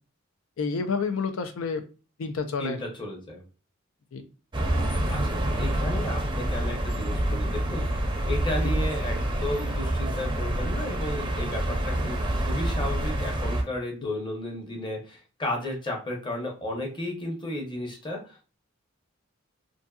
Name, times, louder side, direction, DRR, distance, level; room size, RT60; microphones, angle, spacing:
voice 1, 0.6-1.8 2.2-2.8 4.1-4.3, left 5 dB, 85° left, 6 dB, 0.4 m, -29 dB
voice 2, 2.6-3.4 5.1-7.9 8.2-18.4, left 1 dB, 25° left, -1 dB, 0.7 m, -33 dB
sound 1, 4.5-13.6, right 1 dB, 25° right, 0.5 m, -27 dB
2.6 x 2.5 x 2.3 m, 0.35 s
head